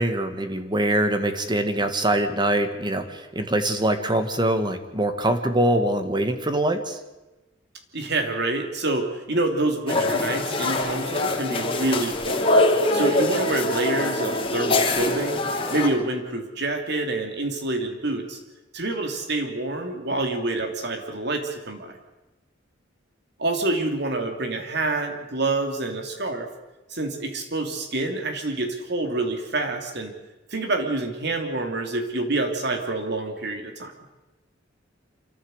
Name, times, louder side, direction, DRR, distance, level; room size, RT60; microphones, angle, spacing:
voice 1, 0.0-7.0, right 1 dB, 25° right, 8 dB, 1.7 m, -23 dB
voice 2, 7.9-12.5 12.9-15.4 15.7-18.4 18.7-22.0 23.4-26.5 26.9-30.1 30.5-33.9, right 2 dB, 60° right, 5 dB, 3.0 m, -27 dB
sound 1, 9.9-15.9, left 2 dB, 30° left, 3.2 m, -23 dB
26.0 x 14.5 x 8.0 m, 1.1 s
head